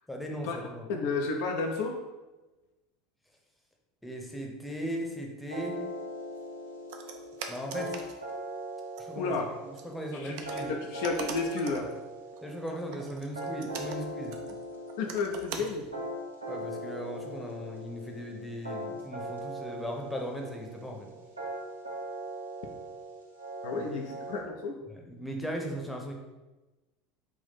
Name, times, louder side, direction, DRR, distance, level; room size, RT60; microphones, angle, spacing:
voice 1, 0.1-0.8 4.0-5.8 7.5-8.0 9.0-9.4 9.8-10.7 12.4-14.3 16.5-21.1 23.7-24.0 24.9-26.1, equal, 5° left, 1 dB, 0.7 m, -38 dB
voice 2, 0.9-2.0 9.2-9.5 10.1-10.4 10.7-11.9 15.0-15.9 23.6-24.8, left 4 dB, 55° left, 2 dB, 0.4 m, -31 dB
sound 1, 5.5-24.4, right 1 dB, 85° right, 0.8 m, -40 dB
sound 2, 6.9-8.2 9.0-9.1 9.8-9.9 10.3-12.0 12.4-15.9, right 6 dB, 55° right, 0.4 m, -42 dB
3.6 x 2.5 x 4.0 m, 1.1 s
figure-of-eight pair, 75°, 0 cm